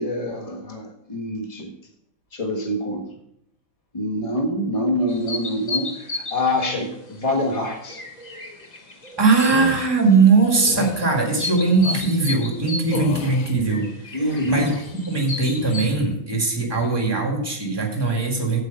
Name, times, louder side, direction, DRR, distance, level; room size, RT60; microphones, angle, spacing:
voice 1, 0.0-1.7 2.3-3.1 3.9-8.0 14.1-14.7, left 1 dB, 20° left, 3 dB, 1.1 m, -25 dB
sound 1, 5.1-15.8, left 2 dB, 40° left, 0.5 m, -35 dB
voice 2, 9.2-14.8 15.1-18.6, right 4 dB, 10° right, 1 dB, 1.7 m, -20 dB
sound 2, 9.4-9.9 10.6-11.0 11.7-12.1 12.9-13.5 14.2-15.0 15.5-16.2 16.6-17.0, left 9 dB, 85° left, 1.6 m, -32 dB
8.2 x 8.2 x 5.3 m, 0.80 s
omnidirectional pair, 2.4 m